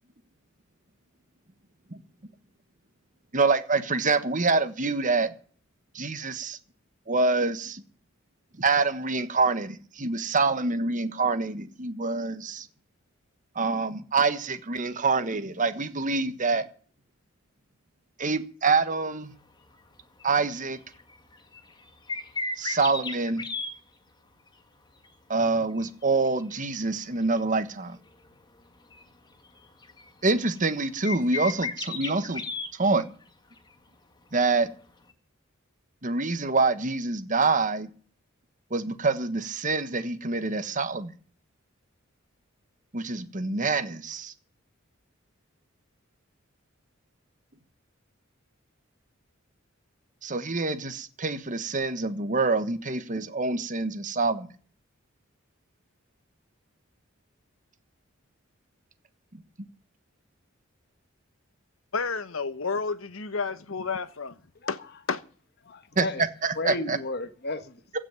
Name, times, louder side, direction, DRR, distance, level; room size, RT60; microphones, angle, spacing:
voice 1, 3.3-5.3 5.9-6.6 7.1-7.8 8.6-12.7 13.5-16.6 18.2-19.3 20.2-20.8 22.6-23.4 25.3-28.0 30.2-32.4 32.7-33.0 34.3-34.7 36.0-37.9 38.7-41.1 42.9-44.3 50.2-54.5 66.0-66.1 66.4-67.0, right 3 dB, 40° right, 1.4 m, -26 dB
sound 1, 20.2-20.6 20.9-23.7 25.8-26.9 27.3-27.4 28.9-29.0 29.6-30.7 31.0-33.2 33.6-33.7 35.1-35.2, left 3 dB, 20° left, 1.7 m, -34 dB
voice 2, 61.9-64.4 64.7-64.8 65.1-65.2, left 4 dB, 85° left, 1.2 m, -30 dB
voice 3, 65.6-66.3 66.6-67.8, left 2 dB, 55° left, 1.4 m, -33 dB
15.5 x 6.2 x 9.2 m
head